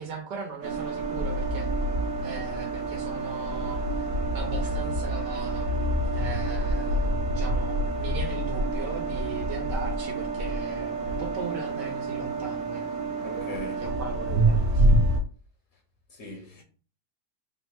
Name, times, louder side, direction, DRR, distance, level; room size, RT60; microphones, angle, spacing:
voice 1, 0.0-1.7 2.2-4.1 4.3-13.0 13.8-14.9, right 4 dB, 80° right, 1.4 m, -39 dB
sound 1, 0.6-15.2, right 1 dB, 65° right, 0.8 m, -27 dB
voice 2, 13.2-13.9 16.1-16.6, left 3 dB, 60° left, 1.0 m, -41 dB
3.7 x 2.1 x 4.3 m
omnidirectional pair, 1.8 m